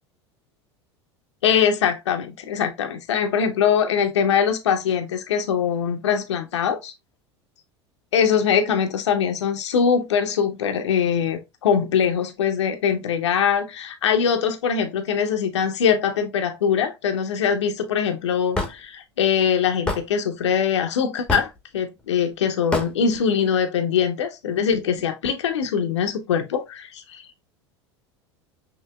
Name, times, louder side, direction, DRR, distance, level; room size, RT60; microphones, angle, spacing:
voice 1, 1.4-6.9 8.1-27.2, left 7 dB, 80° left, 0.6 m, -22 dB
Hammer / Wood, 18.5-18.7 19.9-20.0 21.3-21.6 22.7-22.9, left 2 dB, 5° left, 1.1 m, -24 dB
5.7 x 2.8 x 2.3 m
hypercardioid pair, 85°, 15 cm